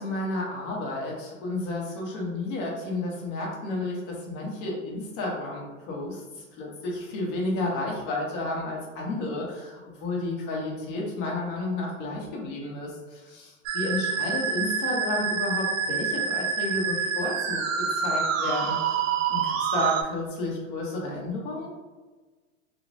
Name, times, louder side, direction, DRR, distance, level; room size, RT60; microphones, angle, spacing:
voice 1, 0.0-6.2 6.6-17.6 17.9-19.0 19.3-21.7, left 2 dB, 40° left, -2 dB, 1.0 m, -31 dB
Musical instrument, 13.7-20.0, right 6 dB, 85° right, 0.5 m, -27 dB
3.1 x 2.4 x 2.7 m, 1.3 s
hypercardioid pair, 130°, 38 cm